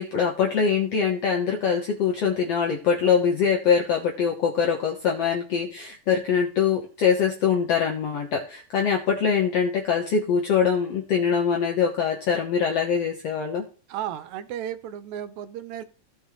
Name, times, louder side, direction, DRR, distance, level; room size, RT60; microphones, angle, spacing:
voice 1, 0.0-13.7, left 6 dB, 65° left, 0 dB, 1.8 m, -23 dB
voice 2, 13.9-15.8, right 10 dB, 75° right, 12 dB, 1.8 m, -34 dB
16.0 x 5.5 x 3.1 m, 0.38 s
omnidirectional pair, 3.9 m